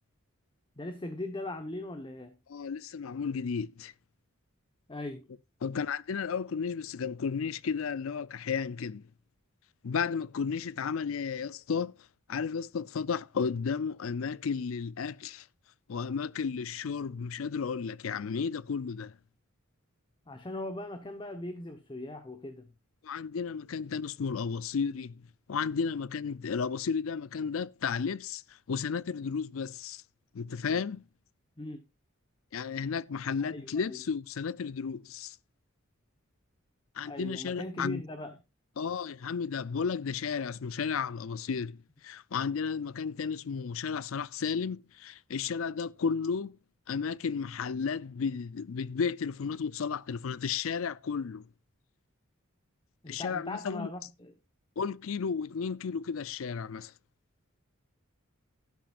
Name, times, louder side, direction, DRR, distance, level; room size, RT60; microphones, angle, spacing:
voice 1, 0.8-2.4 4.9-5.2 20.3-22.7 31.6-31.8 33.4-34.0 37.0-38.4 53.0-54.3, left 1 dB, 25° left, 1.1 m, -39 dB
voice 2, 2.5-3.9 5.6-9.0 9.8-11.9 12.3-15.5 15.9-19.1 23.0-25.2 25.5-28.4 28.7-30.0 30.3-31.0 32.5-35.4 37.0-38.0 38.8-41.8 42.0-46.6 46.9-51.4 53.1-53.9 54.8-56.9, left 6 dB, 70° left, 0.5 m, -33 dB
13.0 x 12.0 x 2.5 m
head